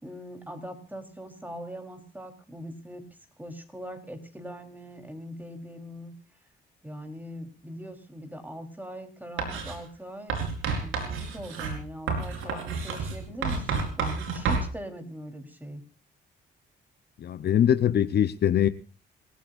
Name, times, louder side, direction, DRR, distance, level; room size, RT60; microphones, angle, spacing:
voice 1, 0.0-3.1 3.4-6.1 6.8-10.3 10.8-15.8, equal, 10° right, 3.8 m, -41 dB
Writing, 9.4-9.8 10.3-14.7, right 4 dB, 85° right, 4.8 m, -30 dB
voice 2, 17.2-18.7, left 9 dB, 55° left, 0.9 m, -22 dB
27.0 x 15.5 x 2.6 m
cardioid pair, 90°, 20 cm